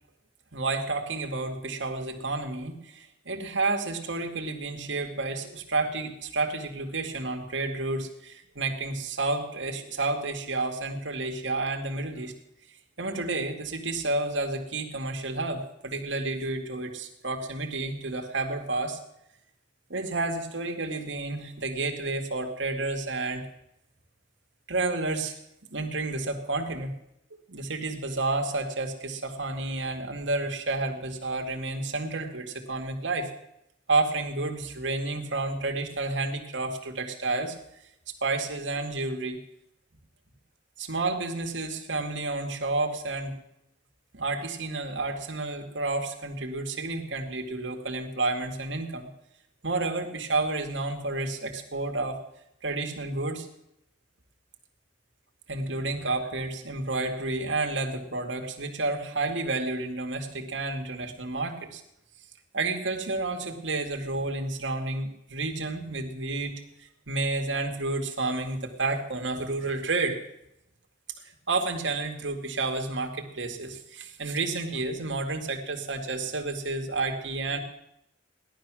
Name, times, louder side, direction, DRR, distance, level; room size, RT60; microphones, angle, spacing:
voice 1, 0.5-12.4 13.0-19.0 19.9-23.5 24.7-25.4 25.7-26.9 27.5-33.3 33.9-37.5 38.2-39.4 40.8-43.4 44.1-49.1 49.6-52.2 52.6-53.5 55.5-61.8 62.5-70.2 71.2-77.6, right 3 dB, 85° right, 3 dB, 2.2 m, -30 dB
17.0 x 11.5 x 6.3 m, 0.80 s
head